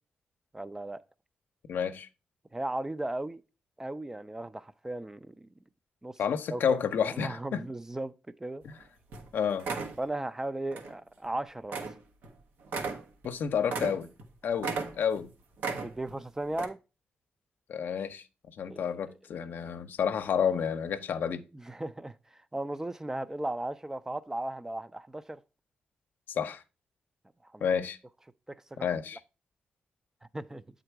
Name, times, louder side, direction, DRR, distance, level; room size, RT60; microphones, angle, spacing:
voice 1, 0.5-1.0 2.5-3.4 3.8-5.5 6.0-6.2 6.5-6.8 7.1-8.6 10.0-11.9 15.7-16.8 18.7-18.9 21.5-25.4 27.4-27.6 28.5-28.9 30.3-30.6, right 1 dB, 15° right, 0.4 m, -36 dB
voice 2, 1.7-2.1 6.2-7.6 8.6-8.7 9.3-9.7 13.2-14.1 14.4-15.3 17.7-18.2 18.6-21.4 26.3-26.6 27.6-28.0 28.8-29.2, left 7 dB, 75° left, 0.6 m, -30 dB
sound 1, 8.7-8.8 9.1-9.3 9.6-10.0 10.7-10.9 11.2-11.3 11.7-12.0 12.2-12.3 12.6-14.3 14.6-15.2 15.6-16.2 16.5-16.6, right 4 dB, 90° right, 1.1 m, -35 dB
8.0 x 3.8 x 4.5 m
cardioid pair, 95°, 3 cm